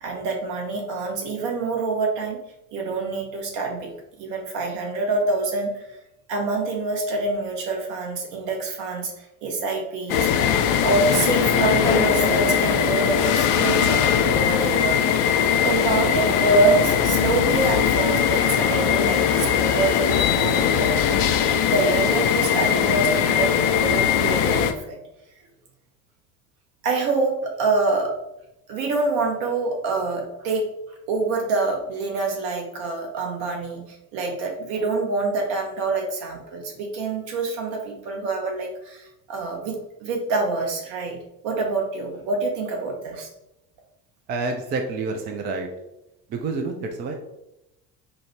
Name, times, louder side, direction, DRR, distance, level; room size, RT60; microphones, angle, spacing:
voice 1, 0.0-2.4 2.7-3.9 4.2-5.9 6.3-10.3 10.8-15.3 15.6-20.9 21.7-25.0 26.8-28.2 28.7-30.7 31.1-43.3, right 3 dB, 55° right, 2 dB, 1.0 m, -26 dB
sound 1, 10.1-24.7, left 8 dB, 45° left, 0.4 m, -20 dB
voice 2, 44.3-45.7 46.3-47.2, right 3 dB, 25° right, 3 dB, 0.4 m, -28 dB
4.8 x 2.0 x 3.0 m, 0.87 s
figure-of-eight pair, 65°, 48 cm